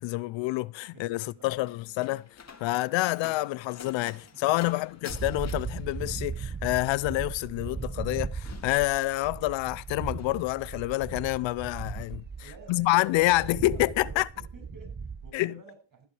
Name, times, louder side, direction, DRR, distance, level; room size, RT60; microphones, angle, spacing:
voice 1, 0.0-2.3 2.6-12.2 12.7-14.3 15.3-15.5, left 19 dB, 65° left, 0.6 m, -28 dB
voice 2, 0.9-1.5 4.5-4.9 12.4-16.1, right 3 dB, 40° right, 6.6 m, -52 dB
Slam, 1.4-9.6 9.9-10.4, left 6 dB, 30° left, 2.1 m, -49 dB
sound 1, 5.1-15.3, right 5 dB, 20° right, 0.9 m, -37 dB
15.0 x 8.3 x 4.8 m
supercardioid pair, 80°, 49 cm